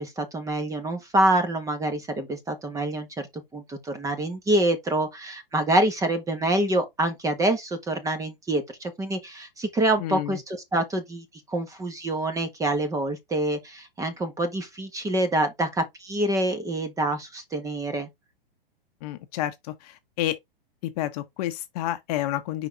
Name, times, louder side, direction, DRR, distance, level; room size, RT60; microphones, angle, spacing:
voice 1, 0.0-3.3 3.5-18.1, right 1 dB, 10° right, 1.3 m, -26 dB
voice 2, 10.0-10.4 19.0-20.4 20.8-22.7, left 13 dB, 40° left, 1.0 m, -30 dB
5.1 x 4.1 x 5.1 m
hypercardioid pair, 135°, 29 cm